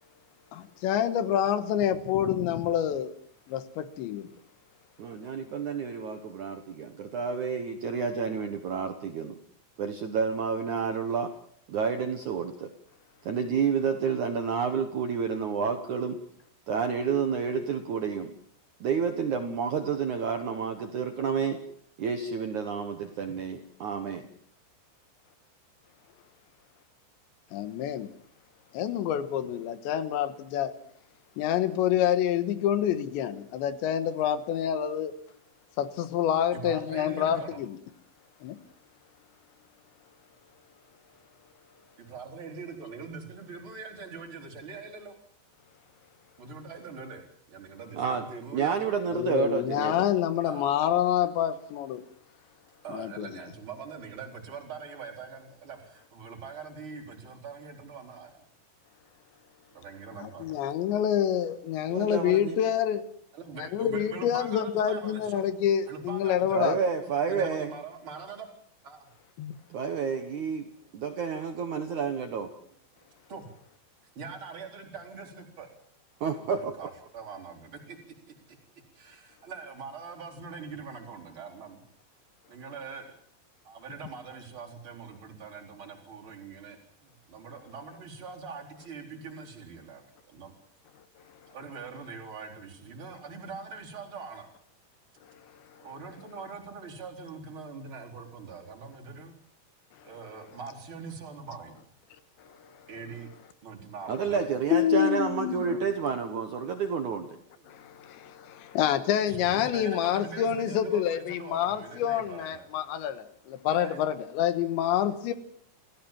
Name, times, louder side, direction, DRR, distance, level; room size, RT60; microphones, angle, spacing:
voice 1, 0.5-3.1 3.5-4.3 27.5-28.1 28.7-30.7 31.4-35.1 35.8-37.8 38.4-38.6 49.1-52.0 52.9-53.3 60.2-63.0 63.7-66.8 69.4-69.6 102.7-102.8 104.7-105.7 107.7-115.3, left 10 dB, 75° left, 3.5 m, -27 dB
voice 2, 5.0-9.4 9.8-11.3 11.7-12.7 13.3-16.2 16.7-18.3 18.8-21.6 22.0-24.3 47.9-48.2 48.5-50.1 61.9-62.6 66.5-67.7 69.7-72.5 76.2-76.7 104.1-107.4, right 6 dB, 70° right, 1.8 m, -30 dB
voice 3, 36.5-37.6 42.0-45.2 46.4-48.9 50.4-50.7 52.8-58.4 59.7-60.5 63.3-65.4 65.9-66.6 67.3-68.5 68.8-69.1 70.8-70.9 73.3-73.5 74.1-75.7 76.3-78.6 78.9-81.9 82.5-83.1 83.6-90.6 91.5-94.6 95.7-99.3 100.0-101.7 102.9-103.3 103.6-104.5 105.7-105.8 107.6-107.8 109.3-112.8 113.7-114.1, right 5 dB, 30° right, 4.4 m, -43 dB
28.5 x 16.0 x 7.5 m
omnidirectional pair, 5.4 m